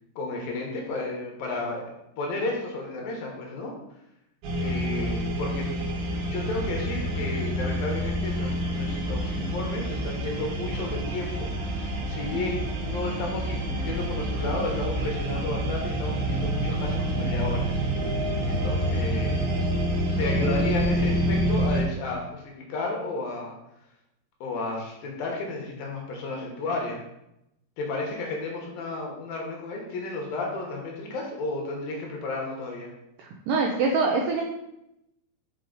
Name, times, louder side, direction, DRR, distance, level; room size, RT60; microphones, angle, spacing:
voice 1, 0.2-1.8 2.2-3.7 4.6-5.7 6.3-17.7 18.4-19.4 20.2-23.5 24.4-27.0 27.8-32.9, left 2 dB, 70° left, 0 dB, 2.7 m, -32 dB
sound 1, 4.4-21.8, right 1 dB, 70° right, 3.0 m, -27 dB
voice 2, 33.2-34.4, right 4 dB, 85° right, 0 dB, 1.9 m, -24 dB
5.8 x 5.6 x 3.9 m, 0.84 s
omnidirectional pair, 4.6 m